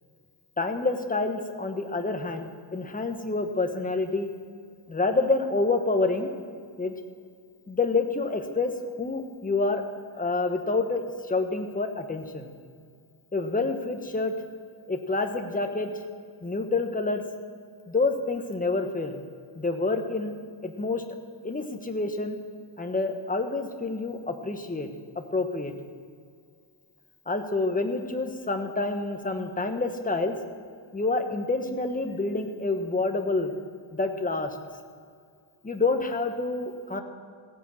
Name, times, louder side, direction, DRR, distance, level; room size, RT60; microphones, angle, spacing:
voice 1, 0.6-4.3 4.9-6.3 6.8-6.9 7.7-8.7 9.0-9.8 10.1-12.5 13.3-14.3 14.9-15.9 16.4-17.2 17.9-19.2 19.5-20.3 20.6-21.0 21.4-22.4 22.8-24.9 25.1-25.7 27.3-30.4 30.9-33.5 33.9-34.6 35.6-37.0, left 3 dB, 15° left, 5 dB, 1.2 m, -28 dB
15.5 x 10.0 x 7.5 m, 2.2 s
wide cardioid pair, 150°, 48 cm